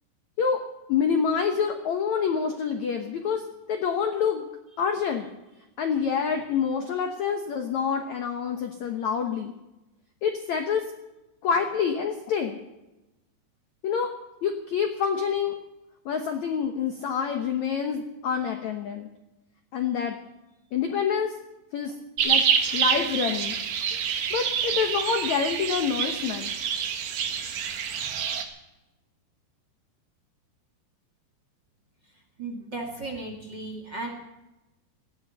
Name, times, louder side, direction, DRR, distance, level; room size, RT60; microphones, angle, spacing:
voice 1, 0.9-4.4 4.8-5.3 5.8-9.5 10.2-10.8 11.4-12.6 13.8-14.1 14.4-15.6 16.1-19.1 19.7-20.2 20.7-21.3 21.7-21.9 22.2-24.0 24.3-26.5, left 6 dB, 70° left, 5 dB, 1.8 m, -27 dB
sound 1, 22.2-28.4, right 7 dB, 60° right, 2.6 m, -27 dB
voice 2, 32.4-34.1, right 2 dB, 35° right, 3 dB, 2.0 m, -35 dB
18.5 x 13.5 x 5.5 m, 1.0 s
omnidirectional pair, 4.8 m